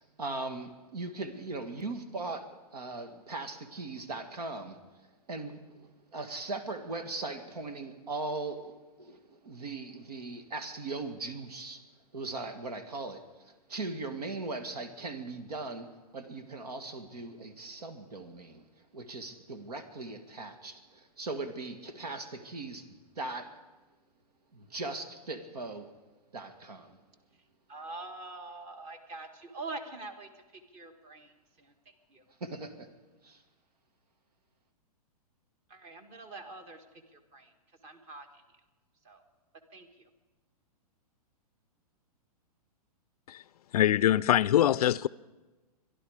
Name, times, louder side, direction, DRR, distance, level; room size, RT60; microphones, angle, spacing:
voice 1, 0.2-2.5 2.7-4.8 5.3-8.7 9.0-11.8 12.1-13.2 13.7-15.9 16.1-18.7 18.9-23.5 24.5-25.9 26.3-27.0 32.4-32.9 33.2-33.4, right 3 dB, 80° right, 1.9 m, -39 dB
voice 2, 27.7-31.3 31.6-31.7 32.1-32.2 35.7-36.8 37.1-37.5 37.8-38.3 39.0-39.2 39.7-40.1, right 3 dB, 30° right, 1.7 m, -44 dB
voice 3, 43.7-45.1, left 12 dB, 70° left, 0.4 m, -23 dB
25.0 x 11.0 x 4.9 m
hypercardioid pair, 125°, 20 cm